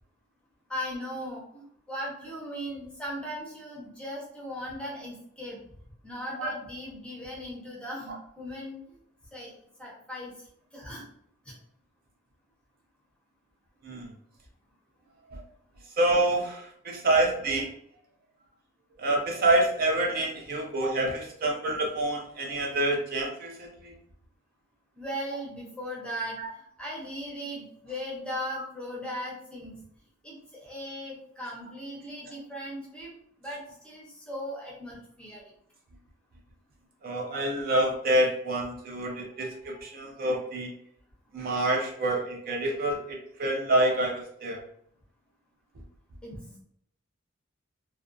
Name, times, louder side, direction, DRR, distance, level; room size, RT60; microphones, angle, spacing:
voice 1, 0.7-5.6 6.0-8.8 9.3-9.5 9.8-10.3 10.7-11.0 11.5-11.6 17.4-17.5 25.0-26.4 26.8-29.8 30.2-33.1 33.4-35.4 46.2-46.6, equal, 5° left, -4 dB, 0.6 m, -38 dB
voice 2, 16.0-17.7 19.0-23.9 26.4-26.5 37.0-40.7 41.3-44.6, right 1 dB, 45° right, 0 dB, 0.4 m, -27 dB
2.4 x 2.2 x 2.5 m, 0.68 s
head